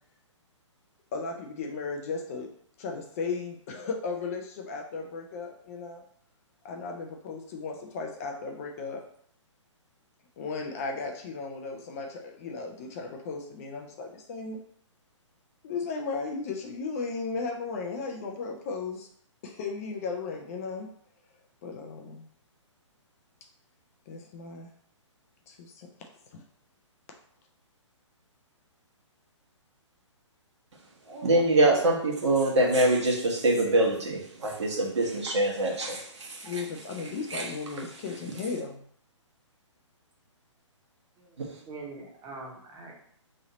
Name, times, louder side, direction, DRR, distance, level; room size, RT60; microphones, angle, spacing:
voice 1, 1.1-2.5 2.8-6.0 6.6-9.0 10.4-14.6 15.6-19.1 19.4-20.9 21.6-22.2 24.1-24.7 25.5-26.4 36.4-38.8, left 4 dB, 30° left, 2 dB, 0.4 m, -35 dB
voice 2, 31.1-36.5 37.3-37.4 41.4-41.5, right 1 dB, 65° right, -2 dB, 1.2 m, -24 dB
voice 3, 41.2-42.9, right 3 dB, 20° right, -1 dB, 0.9 m, -43 dB
3.1 x 2.7 x 4.0 m, 0.62 s
figure-of-eight pair, 130°, 16 cm